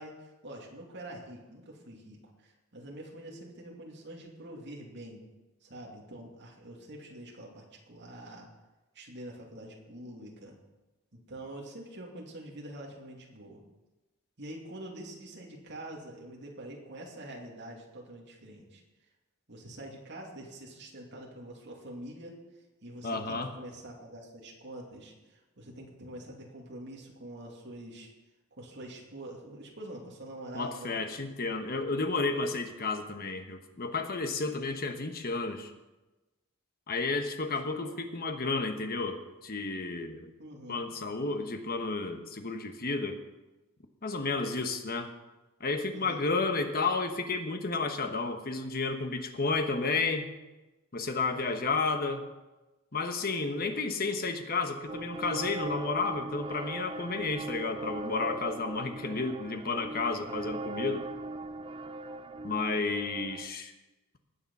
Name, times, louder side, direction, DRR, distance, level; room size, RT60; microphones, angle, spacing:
voice 1, 0.0-5.2 5.6-8.5 8.9-10.6 11.1-13.6 14.4-18.8 19.5-28.1 28.6-30.9 37.7-38.0 40.4-40.8 44.7-45.0 45.9-46.2 51.3-51.7, right 1 dB, 50° right, -1 dB, 2.6 m, -45 dB
voice 2, 23.0-23.5 30.5-35.7 36.9-40.3 40.7-43.2 44.0-45.1 45.6-50.3 50.9-52.3 52.9-61.0 62.4-63.7, left 3 dB, 40° left, 6 dB, 1.2 m, -32 dB
sound 1, 54.9-63.5, right 2 dB, 25° right, 0.5 m, -39 dB
19.5 x 7.0 x 5.5 m, 1.1 s
head